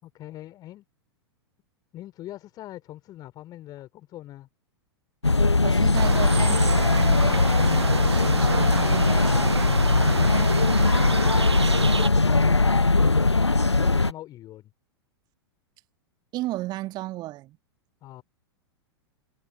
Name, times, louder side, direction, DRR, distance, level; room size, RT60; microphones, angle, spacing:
voice 1, 0.0-0.8 1.9-4.5 11.4-12.9 13.4-14.7 18.0-18.2, left 14 dB, 30° left, 3.3 m, -42 dB
sound 1, 5.2-14.1, left 3 dB, 90° left, 0.5 m, -20 dB
voice 2, 5.6-10.5 16.3-17.6, right 17 dB, 30° right, 1.7 m, -35 dB
sound 2, 5.9-12.1, right 4 dB, 80° right, 0.9 m, -29 dB
figure-of-eight pair, 100°, 14 cm